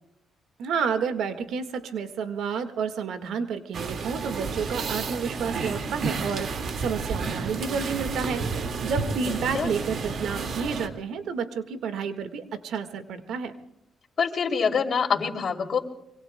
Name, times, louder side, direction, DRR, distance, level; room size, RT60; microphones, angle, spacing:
voice 1, 0.6-13.5, right 6 dB, 75° right, 9 dB, 1.6 m, -30 dB
sound 1, 3.7-10.9, right 4 dB, 55° right, 2.0 m, -31 dB
voice 2, 9.3-9.7 14.2-15.8, left 6 dB, 50° left, 3 dB, 2.9 m, -26 dB
25.0 x 24.5 x 2.2 m, 0.80 s
cardioid pair, 90°, 0 cm